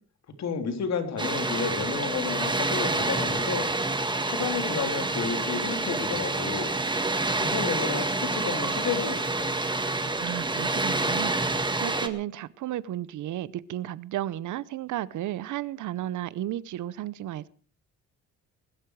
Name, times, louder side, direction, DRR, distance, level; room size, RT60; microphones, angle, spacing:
voice 1, 0.4-3.7 4.2-6.7 7.4-9.5, left 6 dB, 60° left, 6 dB, 3.5 m, -31 dB
Water, 1.2-12.1, right 2 dB, 15° right, 1.8 m, -28 dB
voice 2, 10.2-17.5, right 13 dB, 75° right, 19 dB, 0.8 m, -33 dB
20.5 x 12.5 x 4.8 m, 0.43 s
cardioid pair, 90°, 30 cm